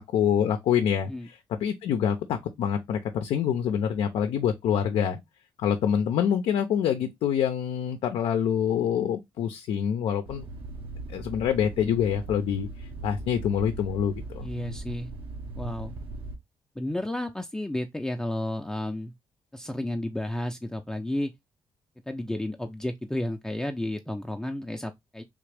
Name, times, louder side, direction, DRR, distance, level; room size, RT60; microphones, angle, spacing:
voice 1, 0.0-5.2 5.6-10.5 11.1-14.4, left 8 dB, 80° left, 0.5 m, -26 dB
sound 1, 10.3-16.4, right 2 dB, 70° right, 1.0 m, -39 dB
voice 2, 14.4-15.1 15.6-15.9 16.8-19.1 19.5-21.3 22.1-25.2, left 1 dB, 5° left, 0.5 m, -32 dB
3.5 x 2.5 x 3.2 m
cardioid pair, 70°, 9 cm